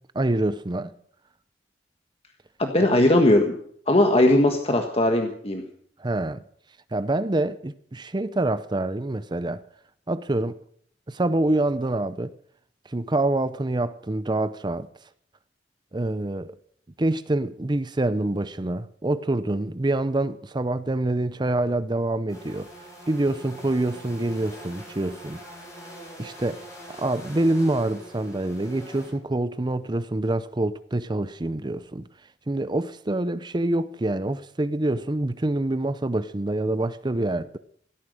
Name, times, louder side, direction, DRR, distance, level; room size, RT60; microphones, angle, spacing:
voice 1, 0.1-0.9 2.8-2.9 6.0-6.4 6.9-9.6 10.1-10.6 11.1-12.3 12.9-14.9 15.9-16.6 17.0-22.7 23.1-25.4 26.2-26.6 27.0-32.1 32.5-37.6, right 2 dB, 25° right, 0.6 m, -26 dB
voice 2, 2.6-3.5 3.9-5.6, left 1 dB, 35° left, 1.5 m, -19 dB
sound 1, 22.3-29.1, equal, 20° left, 7.5 m, -43 dB
16.0 x 13.5 x 6.4 m
head